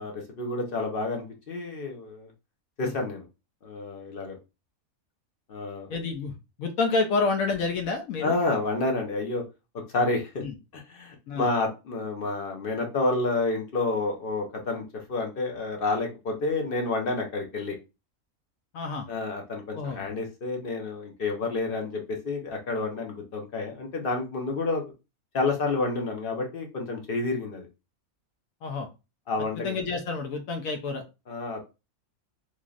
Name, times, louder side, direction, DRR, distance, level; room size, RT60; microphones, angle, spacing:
voice 1, 0.0-2.3 2.8-3.2 3.6-4.4 5.5-5.9 8.2-9.4 9.9-10.4 10.7-14.8 15.1-17.7 19.1-24.8 25.3-27.7 29.3-29.7 31.3-31.6, left 3 dB, 50° left, 2 dB, 0.8 m, -29 dB
voice 2, 5.9-8.3 10.4-10.5 11.3-11.5 18.7-19.1 19.7-20.1 28.6-28.9 29.4-31.0, left 4 dB, 75° left, 4 dB, 1.0 m, -29 dB
3.2 x 2.6 x 2.4 m, 0.27 s
omnidirectional pair, 1.5 m